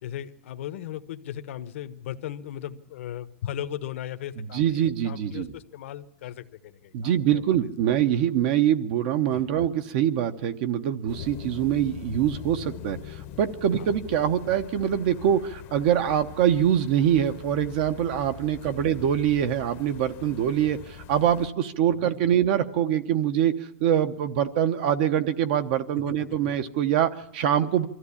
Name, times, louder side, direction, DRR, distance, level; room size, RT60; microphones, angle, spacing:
voice 1, 0.0-7.4 9.3-9.5 13.7-13.9 18.6-18.9 21.9-22.3 26.4-26.5, left 11 dB, 60° left, 9 dB, 1.0 m, -37 dB
voice 2, 4.5-5.5 6.9-23.5 23.8-27.9, right 10 dB, 45° right, 9 dB, 0.9 m, -24 dB
sound 1, 11.1-21.5, left 10 dB, 35° left, 0.9 m, -42 dB
22.5 x 14.0 x 8.5 m, 0.93 s
supercardioid pair, 160°, 8 cm